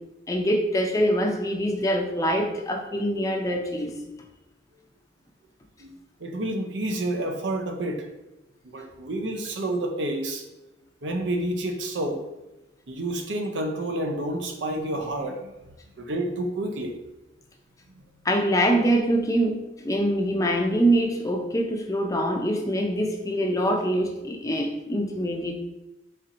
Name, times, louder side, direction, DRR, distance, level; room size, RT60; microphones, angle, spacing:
voice 1, 0.3-3.9 18.2-25.5, equal, 20° left, 2 dB, 0.4 m, -24 dB
voice 2, 5.8-8.1 8.6-10.4 11.0-12.2 12.9-15.5 16.0-17.0, right 1 dB, 75° right, 4 dB, 0.6 m, -29 dB
4.3 x 4.0 x 2.5 m, 0.98 s
head